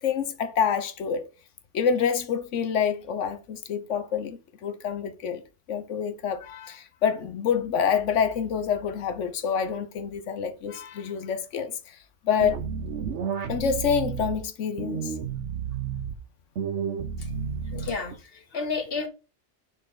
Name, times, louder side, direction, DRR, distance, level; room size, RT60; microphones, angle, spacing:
voice 1, 0.0-1.3 1.7-5.4 5.7-12.0 12.2-12.6 13.5-15.1, left 7 dB, 90° left, 1.2 m, -27 dB
sound 1, 12.4-14.4 14.8-16.1 16.6-18.1, right 7 dB, 75° right, 1.1 m, -31 dB
voice 2, 17.7-19.1, left 4 dB, 55° left, 1.3 m, -32 dB
6.3 x 4.4 x 3.9 m
omnidirectional pair, 1.2 m